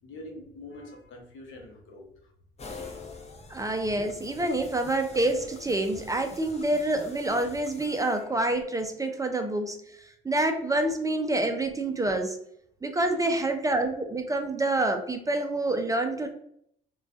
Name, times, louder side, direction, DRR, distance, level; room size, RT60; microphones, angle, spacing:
voice 1, 0.0-2.3 9.4-9.5 13.0-13.5, left 1 dB, 75° left, 2 dB, 0.8 m, -46 dB
sound 1, 2.6-8.6, left 3 dB, 35° left, 0.5 m, -46 dB
voice 2, 3.5-9.8 10.2-12.4 12.8-16.3, right 2 dB, 15° right, 5 dB, 0.3 m, -27 dB
2.4 x 2.3 x 2.3 m, 0.70 s
cardioid pair, 90°, 20 cm